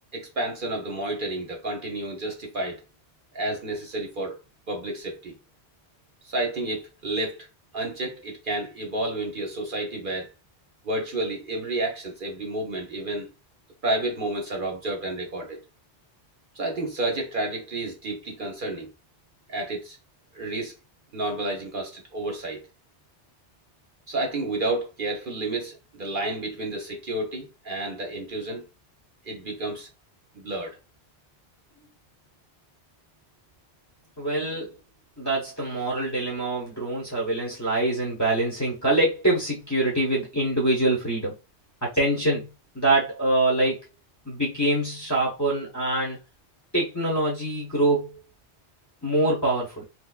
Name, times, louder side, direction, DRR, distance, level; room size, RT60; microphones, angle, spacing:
voice 1, 0.1-2.8 3.3-4.4 4.7-5.3 6.2-7.5 7.7-10.3 10.8-13.3 13.8-15.6 16.5-18.9 19.5-20.0 20.3-20.7 21.1-22.6 24.1-28.6 29.3-29.9 30.3-30.8, right 2 dB, 50° right, 0.8 m, -30 dB
voice 2, 34.2-34.7 35.2-41.3 41.8-42.5 42.7-43.8 44.2-46.2 46.7-48.2 49.0-49.8, right 2 dB, 15° left, 0.8 m, -24 dB
3.3 x 3.0 x 2.3 m
omnidirectional pair, 1.2 m